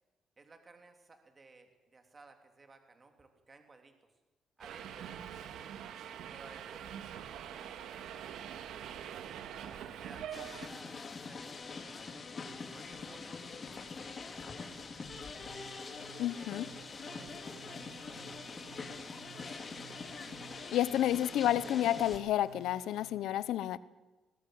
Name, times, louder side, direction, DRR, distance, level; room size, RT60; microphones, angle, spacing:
voice 1, 0.4-4.0 4.6-5.7 6.3-8.1 10.0-12.2 12.7-15.5 16.3-19.1, right 3 dB, 30° right, 5 dB, 3.3 m, -58 dB
Subway metro underground, 4.6-10.7, right 9 dB, 80° right, 1.9 m, -44 dB
sound 1, 10.3-22.2, left 4 dB, 35° left, 3.3 m, -44 dB
sound 2, 15.1-23.1, right 8 dB, 60° right, 7.7 m, -56 dB
voice 2, 16.2-16.7 20.7-23.8, left 12 dB, 80° left, 17 dB, 1.0 m, -30 dB
21.0 x 20.5 x 8.0 m, 1.2 s
cardioid pair, 95°, 0 cm